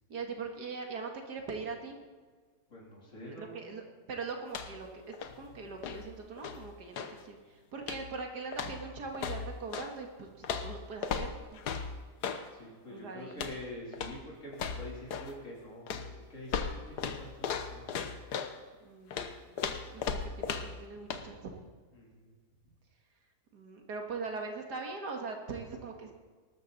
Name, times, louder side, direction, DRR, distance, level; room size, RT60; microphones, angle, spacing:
voice 1, 0.1-2.0 3.3-11.6 12.9-13.5 18.8-19.5 19.9-21.6 23.5-26.1, right 4 dB, 80° right, 3 dB, 2.3 m, -41 dB
voice 2, 2.7-3.8 12.5-18.0 21.9-22.3, left 1 dB, 50° left, -4 dB, 3.8 m, -46 dB
sound 1, 4.4-4.9 5.1-7.2 7.8-8.2 8.5-9.9 10.4-12.5 13.3-13.6 13.9-14.2 14.5-15.4 15.9-18.6 19.1-20.8 21.1-21.3, left 6 dB, 75° left, 1.5 m, -37 dB
19.0 x 13.0 x 4.1 m, 1.5 s
omnidirectional pair, 1.7 m